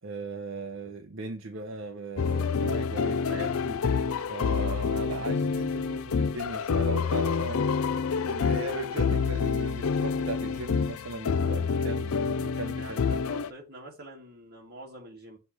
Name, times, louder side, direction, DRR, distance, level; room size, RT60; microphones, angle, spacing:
voice 1, 0.0-3.8 4.3-7.9 8.2-13.2, right 2 dB, 65° right, 0.8 m, -37 dB
sound 1, 2.2-13.5, left 5 dB, 75° left, 0.4 m, -28 dB
voice 2, 7.0-7.3 12.5-15.4, right 1 dB, 45° right, 2.7 m, -46 dB
6.8 x 3.2 x 5.9 m
head